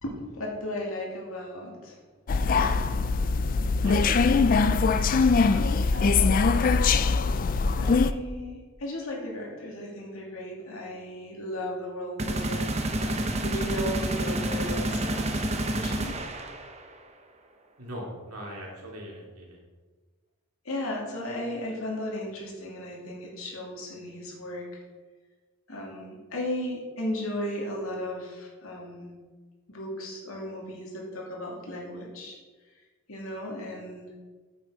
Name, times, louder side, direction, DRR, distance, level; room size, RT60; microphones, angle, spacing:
voice 1, 0.0-2.0 2.4-2.9 3.8-4.3 5.9-6.4 7.7-16.2 20.6-24.8 25.7-29.2 29.7-32.4 33.1-34.1, left 1 dB, 70° left, -2 dB, 2.6 m, -36 dB
sound 1, 2.3-8.1, left 4 dB, 40° left, 0.3 m, -22 dB
voice 2, 5.1-5.7 17.8-19.6, equal, 85° right, -2 dB, 2.8 m, -41 dB
sound 2, 12.2-16.9, right 1 dB, 30° right, 0.8 m, -29 dB
9.3 x 7.2 x 5.0 m, 1.4 s
head